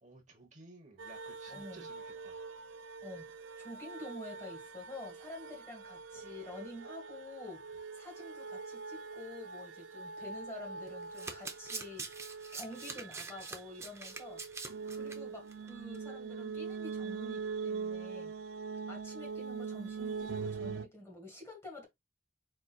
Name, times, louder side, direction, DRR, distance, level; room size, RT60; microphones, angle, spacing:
voice 1, 0.0-2.5, right 2 dB, 40° right, 1.0 m, -56 dB
sound 1, 1.0-20.9, right 5 dB, 80° right, 0.4 m, -43 dB
voice 2, 1.5-1.9 3.0-12.2 12.5-18.4 18.9-21.9, left 2 dB, 15° left, 1.6 m, -48 dB
Domestic sounds home sounds, 10.9-15.2 15.5-15.7 15.9-16.0, right 4 dB, 15° right, 0.6 m, -44 dB
4.2 x 3.8 x 2.2 m
head